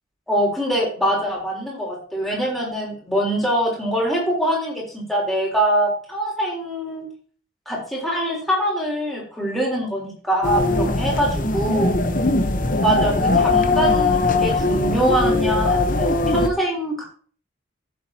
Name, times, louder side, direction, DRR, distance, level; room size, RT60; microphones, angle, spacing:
voice 1, 0.3-7.1 7.7-12.0 12.8-17.0, equal, ahead, -4 dB, 3.6 m, -23 dB
sound 1, 10.4-16.5, left 2 dB, 40° left, 0.9 m, -20 dB
14.5 x 7.5 x 2.8 m, 0.44 s
head